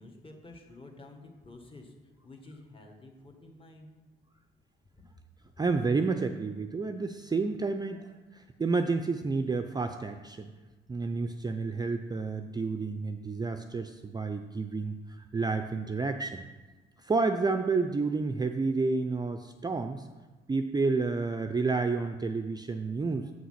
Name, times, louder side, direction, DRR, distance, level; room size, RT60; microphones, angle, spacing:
voice 1, 0.0-1.9 2.2-3.9 5.0-5.1, left 2 dB, 25° left, 2 dB, 1.7 m, -50 dB
voice 2, 5.6-10.5 10.9-16.4 17.0-20.1 20.5-23.3, right 4 dB, 20° right, 6 dB, 0.4 m, -30 dB
7.6 x 5.7 x 5.7 m, 1.2 s
cardioid pair, 90°, 20 cm